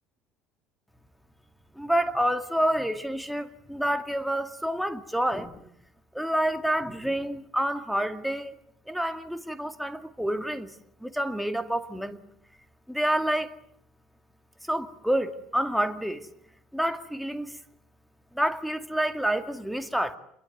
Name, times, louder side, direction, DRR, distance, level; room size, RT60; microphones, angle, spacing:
voice 1, 1.8-5.6 6.1-8.5 8.9-10.7 11.0-12.2 12.9-13.5 14.7-16.3 16.7-17.5 18.3-20.2, right 1 dB, ahead, 2.2 m, -28 dB
27.0 x 22.0 x 9.3 m
supercardioid pair, 95°, 0 cm